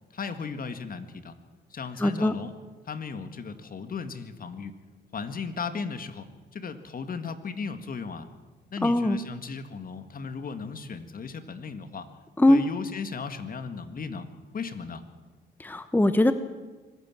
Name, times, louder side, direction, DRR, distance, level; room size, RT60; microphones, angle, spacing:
voice 1, 0.1-1.3 1.7-2.5 2.9-4.7 5.1-6.3 6.5-8.3 8.7-12.1 12.5-14.3 14.5-15.0, left 5 dB, 45° left, 10 dB, 2.0 m, -36 dB
voice 2, 2.0-2.3 8.8-9.2 12.4-12.6 15.6-16.3, left 1 dB, 10° left, 11 dB, 1.0 m, -21 dB
25.0 x 15.5 x 7.5 m, 1.3 s
cardioid pair, 90°, 20 cm